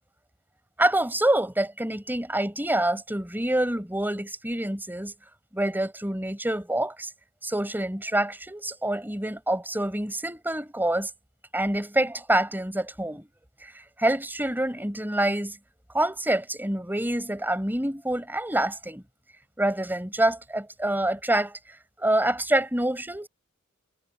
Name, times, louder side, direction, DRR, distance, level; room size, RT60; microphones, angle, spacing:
voice 1, 0.8-5.1 5.5-7.1 7.4-11.1 11.5-13.3 14.0-15.5 15.9-19.0 19.6-21.5 22.0-23.3, right 1 dB, 10° right, 5.1 m, -26 dB
head